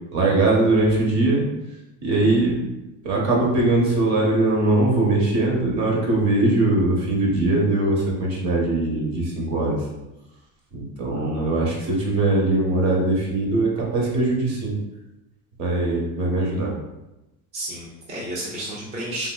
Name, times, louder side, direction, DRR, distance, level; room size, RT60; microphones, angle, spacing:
voice 1, 0.1-1.5 2.0-2.6 3.0-9.8 10.7-14.8 15.6-16.7, right 2 dB, 50° right, -3 dB, 1.0 m, -21 dB
voice 2, 11.1-11.5 17.5-19.3, right 1 dB, 20° right, -5 dB, 0.6 m, -32 dB
3.3 x 2.9 x 2.2 m, 0.98 s
cardioid pair, 150°, 35 cm